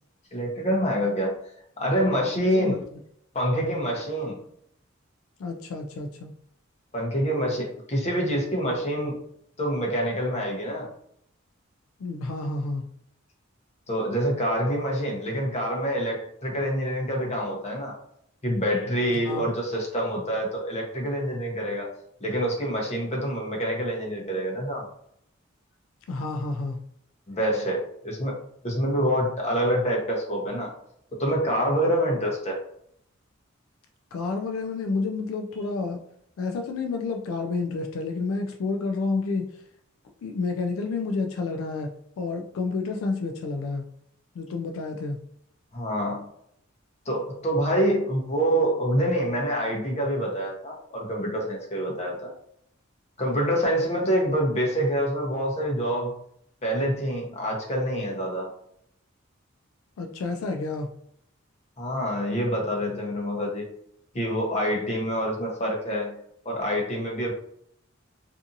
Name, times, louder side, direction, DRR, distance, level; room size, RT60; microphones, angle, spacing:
voice 1, 0.3-1.4 1.8-2.8 3.3-4.4 6.9-9.2 9.6-10.9 13.9-18.0 18.4-24.9 27.3-30.7 31.2-32.6 45.7-46.2 47.1-52.3 53.2-56.2 56.6-58.5 61.8-63.7 64.1-66.2 66.4-67.3, equal, 35° left, -1 dB, 0.8 m, -26 dB
voice 2, 2.4-2.8 5.4-6.3 12.0-12.8 19.3-19.4 26.1-26.8 34.1-36.0 36.4-39.5 40.2-43.8 44.4-45.2 60.0-60.9, left 3 dB, 80° left, 4 dB, 0.3 m, -30 dB
2.6 x 2.5 x 2.6 m, 0.70 s
head